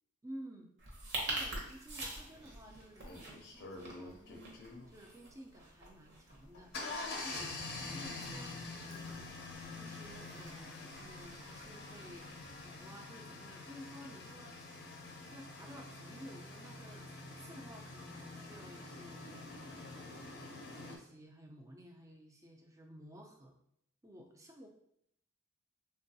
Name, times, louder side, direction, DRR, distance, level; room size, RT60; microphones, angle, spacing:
voice 1, 0.2-0.7 1.1-9.1 9.7-12.3 12.6-14.6 15.3-19.5 20.0-23.6 24.0-24.7, equal, 15° right, 2 dB, 0.3 m, -54 dB
sound 1, 0.8-12.9, right 2 dB, 55° right, 0.7 m, -47 dB
sound 2, 2.4-2.5 3.0-4.9 6.3-21.0, left 3 dB, 50° left, 0.5 m, -46 dB
3.3 x 2.2 x 2.6 m, 0.70 s
head